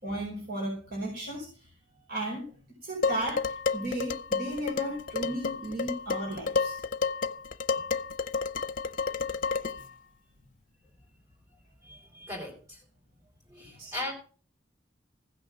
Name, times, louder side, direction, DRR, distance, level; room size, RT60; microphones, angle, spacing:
voice 1, 0.0-1.5 2.1-2.5 2.8-3.4 3.7-6.8 9.7-9.8 13.8-14.0, right 1 dB, 55° right, -2 dB, 4.8 m, -34 dB
Dishes pots and pans, 3.0-9.9, left 4 dB, 50° left, 0.6 m, -31 dB
voice 2, 11.8-12.8 13.5-14.1, left 1 dB, 15° right, -3 dB, 2.9 m, -38 dB
15.5 x 6.5 x 6.2 m, 0.39 s
head